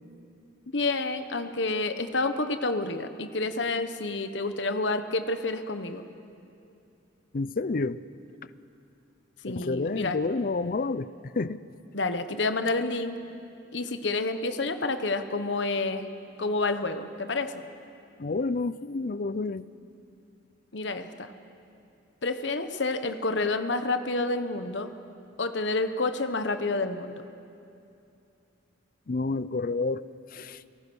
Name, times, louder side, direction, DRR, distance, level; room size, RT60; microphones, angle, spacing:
voice 1, 0.7-6.0 9.4-10.2 11.9-13.2 13.7-16.1 16.4-17.5 20.7-21.3 22.2-24.9 25.4-27.2, left 3 dB, 70° left, 9 dB, 1.1 m, -29 dB
voice 2, 7.3-8.0 9.5-11.1 11.4-11.6 18.2-19.7 29.1-30.0 30.3-30.6, left 3 dB, 50° left, 16 dB, 0.5 m, -29 dB
29.5 x 18.0 x 6.2 m, 2.6 s
head